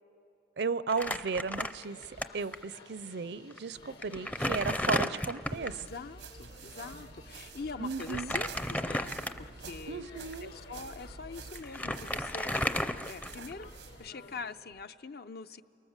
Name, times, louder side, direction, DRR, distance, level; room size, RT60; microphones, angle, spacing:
voice 1, 0.6-2.0 2.3-5.8 7.8-8.3 9.9-10.5, right 4 dB, 70° right, 16 dB, 0.6 m, -35 dB
Crumpling crinkling, 0.9-2.2 2.5-2.6 3.5-3.6 4.0-5.8 8.0-9.6 10.2-10.3 11.2-11.3 11.6-13.6, left 1 dB, 10° left, 0.5 m, -33 dB
sound 1, 1.7-14.4, left 2 dB, 85° left, 4.5 m, -54 dB
sound 2, 5.4-14.1, right 4 dB, 90° right, 0.9 m, -49 dB
voice 2, 5.7-10.1 10.4-13.7 14.0-15.6, left 4 dB, 60° left, 11 dB, 0.6 m, -44 dB
29.5 x 24.0 x 7.3 m, 2.8 s
head